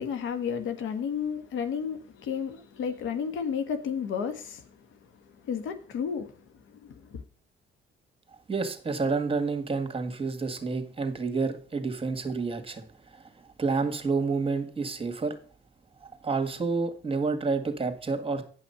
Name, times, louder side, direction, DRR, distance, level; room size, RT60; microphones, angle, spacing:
voice 1, 0.0-4.9 5.4-6.3 6.7-7.2, left 7 dB, 80° left, 1.4 m, -32 dB
voice 2, 8.5-13.3 13.6-15.4 16.0-18.4, right 4 dB, 25° right, 2.0 m, -29 dB
9.8 x 5.8 x 5.7 m
cardioid pair, 90°, 20 cm